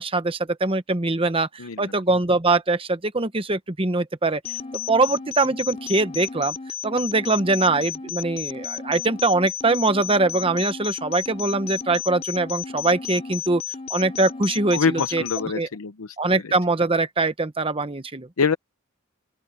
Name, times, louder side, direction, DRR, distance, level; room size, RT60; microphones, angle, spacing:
voice 1, 0.0-4.4 4.7-6.5 6.8-13.6 13.9-15.7 16.2-18.3, right 3 dB, 25° right, 1.1 m, -22 dB
sound 1, 4.4-15.5, left 8 dB, 30° left, 2.6 m, -33 dB
voice 2, 14.7-16.1 18.4-18.6, left 5 dB, 85° left, 0.7 m, -24 dB
open air
head